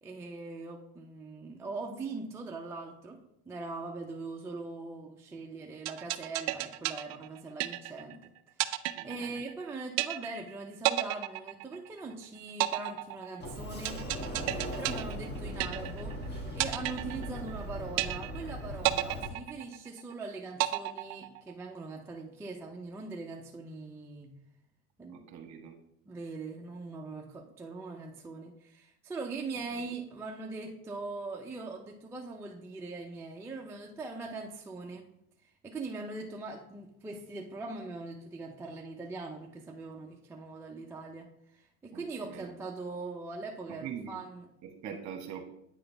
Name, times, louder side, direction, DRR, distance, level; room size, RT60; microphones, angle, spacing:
voice 1, 0.0-8.3 8.6-14.1 14.7-24.4 25.0-25.2 26.1-35.1 35.4-44.5, right 3 dB, 5° right, 0 dB, 0.4 m, -41 dB
sound 1, 5.9-8.2 8.6-9.6 10.0-10.5 10.8-12.1 12.6-16.2 16.6-17.6 18.0-18.5 18.8-20.1 20.6-21.6, right 19 dB, 65° right, 0.5 m, -32 dB
voice 2, 8.9-9.4 25.1-25.7 29.7-29.9 41.9-42.5 43.8-44.2 44.6-45.4, right 8 dB, 40° right, 5 dB, 1.2 m, -43 dB
Sliding door, 13.4-19.3, equal, 25° left, 1.3 m, -39 dB
8.8 x 3.8 x 3.3 m, 0.78 s
supercardioid pair, 110°, 43 cm